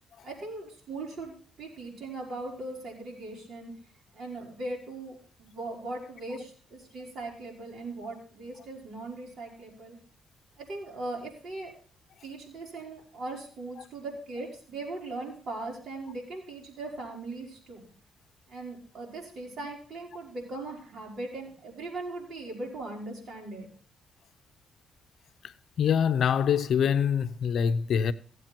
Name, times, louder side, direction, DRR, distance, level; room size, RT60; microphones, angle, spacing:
voice 1, 0.2-3.7 4.1-10.0 10.6-11.7 12.2-17.9 18.5-23.7, right 2 dB, 60° right, 5.2 m, -39 dB
voice 2, 25.4-28.1, left 7 dB, 65° left, 0.7 m, -25 dB
16.5 x 8.3 x 4.5 m
cardioid pair, 90°, 0 cm